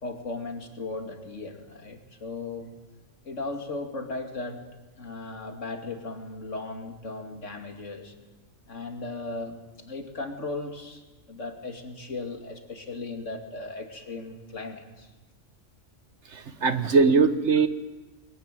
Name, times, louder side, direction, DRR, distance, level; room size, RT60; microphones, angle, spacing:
voice 1, 0.0-2.7 3.2-4.6 5.0-8.1 8.7-11.0 11.3-15.1, left 3 dB, 60° left, 5 dB, 2.8 m, -37 dB
voice 2, 16.3-17.7, right 4 dB, 60° right, 11 dB, 1.4 m, -21 dB
23.0 x 21.0 x 9.2 m, 1.1 s
omnidirectional pair, 1.4 m